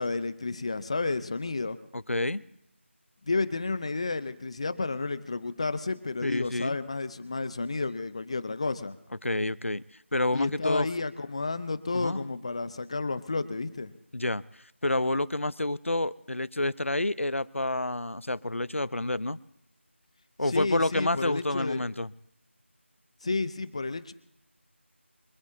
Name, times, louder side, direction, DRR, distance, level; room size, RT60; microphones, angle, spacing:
voice 1, 0.0-1.8 3.3-9.0 10.3-13.9 20.5-21.8 23.2-24.1, left 3 dB, 30° left, 14 dB, 0.7 m, -31 dB
voice 2, 1.9-2.4 6.2-6.8 9.2-9.8 10.1-10.9 11.9-12.2 14.1-19.4 20.4-22.1, left 2 dB, 80° left, 19 dB, 0.7 m, -29 dB
25.0 x 15.5 x 2.8 m, 0.79 s
figure-of-eight pair, 170°, 7 cm